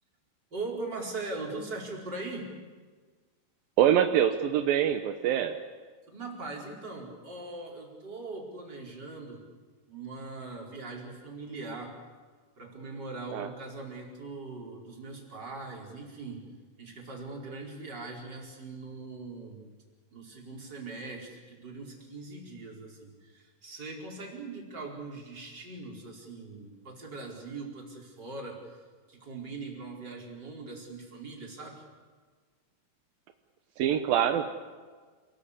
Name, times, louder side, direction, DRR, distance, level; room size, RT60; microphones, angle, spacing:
voice 1, 0.5-2.5 6.1-9.5 9.9-12.0 12.6-16.5 16.8-19.6 20.1-28.8 29.1-31.8, right 3 dB, 20° right, -1 dB, 4.9 m, -41 dB
voice 2, 3.8-5.6 13.3-13.5 33.8-34.5, right 10 dB, 75° right, 7 dB, 2.2 m, -24 dB
28.5 x 20.5 x 8.4 m, 1.5 s
omnidirectional pair, 5.3 m